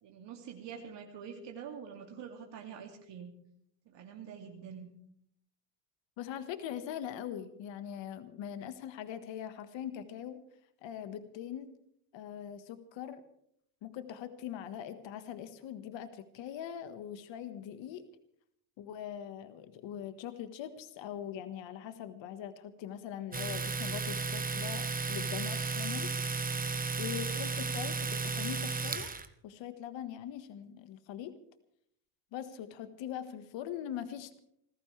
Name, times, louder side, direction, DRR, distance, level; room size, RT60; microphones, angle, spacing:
voice 1, 0.0-3.3 3.9-4.9 27.3-27.4, right 7 dB, 60° right, 2 dB, 2.6 m, -46 dB
voice 2, 6.2-10.4 10.8-11.7 12.1-13.2 13.8-18.1 18.8-26.6 27.0-29.1 29.4-31.4 32.3-34.4, left 10 dB, 65° left, 10 dB, 1.6 m, -42 dB
Domestic sounds home sounds, 23.3-29.2, right 4 dB, 15° right, 1.3 m, -34 dB
27.5 x 14.5 x 3.4 m, 0.71 s
supercardioid pair, 85°, 49 cm